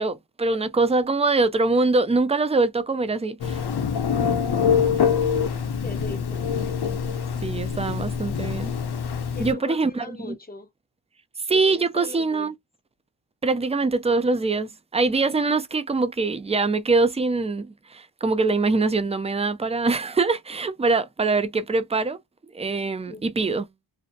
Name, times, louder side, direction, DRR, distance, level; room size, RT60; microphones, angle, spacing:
voice 1, 0.0-3.6 7.4-8.7 9.4-10.4 11.5-12.5 13.4-22.2 22.5-23.6, right 3 dB, 15° right, 0.3 m, -23 dB
Telephone, 3.4-9.5, left 7 dB, 50° left, 0.6 m, -25 dB
voice 2, 4.7-6.4 9.3-10.7 11.5-12.5 15.4-15.5 20.5-20.6 23.1-23.6, left 1 dB, 20° left, 0.7 m, -39 dB
2.5 x 2.0 x 2.6 m
cardioid pair, 50°, 50 cm